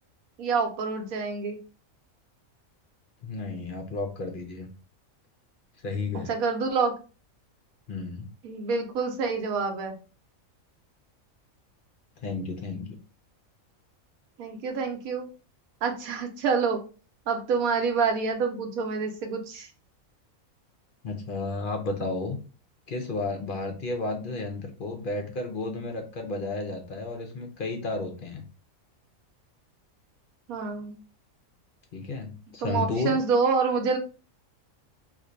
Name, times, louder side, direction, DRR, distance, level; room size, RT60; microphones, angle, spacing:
voice 1, 0.4-1.6 6.3-6.9 8.4-10.0 14.4-15.3 15.8-16.8 17.3-19.7 30.5-31.0 32.6-34.0, right 5 dB, 85° right, 4 dB, 1.1 m, -27 dB
voice 2, 3.2-4.7 5.8-6.3 7.9-8.3 12.2-13.0 21.0-22.4 22.9-28.4 31.9-33.2, left 3 dB, 55° left, 4 dB, 0.6 m, -32 dB
2.5 x 2.5 x 4.2 m, 0.35 s
omnidirectional pair, 1.5 m